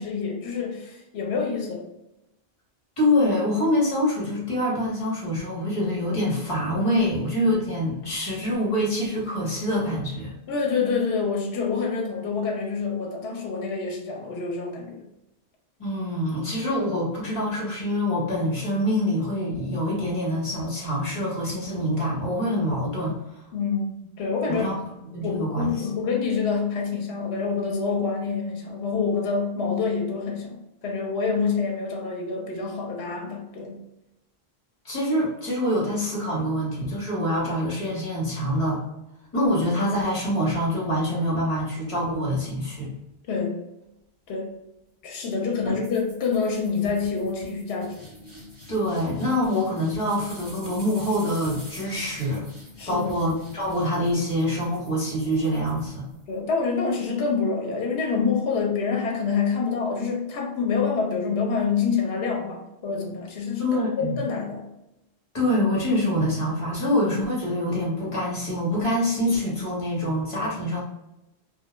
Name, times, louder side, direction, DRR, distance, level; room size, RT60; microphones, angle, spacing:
voice 1, 0.0-1.8 10.5-15.0 23.5-23.9 24.2-24.7 25.2-33.7 43.3-43.6 44.3-44.5 45.0-48.0 52.8-53.1 56.3-64.7, left 5 dB, 75° left, 1 dB, 0.8 m, -27 dB
voice 2, 3.0-10.3 15.8-23.4 24.5-24.7 25.1-25.9 34.8-38.8 39.3-42.9 45.6-45.8 48.7-52.5 52.9-56.1 63.6-64.1 65.3-70.8, left 1 dB, 35° left, -5 dB, 0.9 m, -25 dB
sound 1, 45.8-56.4, left 1 dB, 35° right, 1.1 m, -46 dB
2.2 x 2.1 x 2.9 m, 0.90 s
omnidirectional pair, 1.1 m